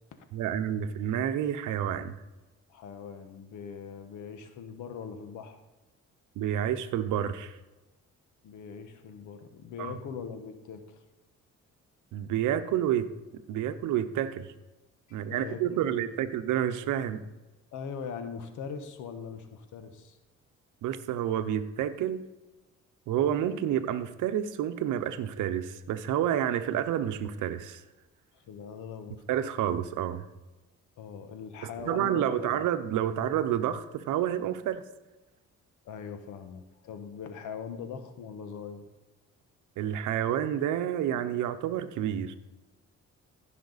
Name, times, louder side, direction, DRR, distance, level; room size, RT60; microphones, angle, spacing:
voice 1, 0.3-2.2 6.4-7.6 9.8-9.9 12.1-13.1 13.5-14.5 15.1-17.2 20.8-22.2 23.1-27.8 29.3-30.2 31.8-34.8 39.8-42.4, right 10 dB, 85° right, 10 dB, 0.8 m, -29 dB
voice 2, 2.7-5.6 8.4-11.0 15.1-16.0 17.7-20.2 28.3-29.2 31.0-32.6 35.8-38.9, left 6 dB, 80° left, 8 dB, 1.2 m, -41 dB
15.5 x 5.9 x 4.0 m, 1.1 s
cardioid pair, 90°, 30 cm